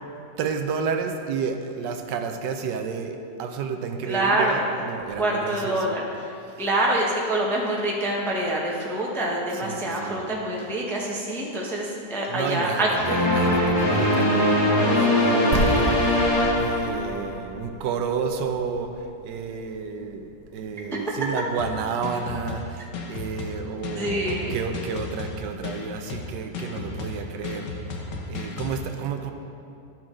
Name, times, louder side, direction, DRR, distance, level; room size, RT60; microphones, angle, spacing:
voice 1, 0.4-6.0 6.5-6.6 9.5-10.2 10.5-10.8 12.3-29.3, right 5 dB, 80° right, 5 dB, 1.3 m, -31 dB
voice 2, 4.0-4.7 5.2-6.0 6.6-12.9 23.9-24.6, right 1 dB, ahead, -3 dB, 0.6 m, -25 dB
sound 1, 13.0-17.5, left 1 dB, 60° left, 2.6 m, -21 dB
sound 2, 15.5-21.3, right 1 dB, 60° right, 1.2 m, -32 dB
sound 3, 21.6-28.8, left 4 dB, 80° left, 1.5 m, -34 dB
12.0 x 6.0 x 3.7 m, 2.6 s
omnidirectional pair, 1.9 m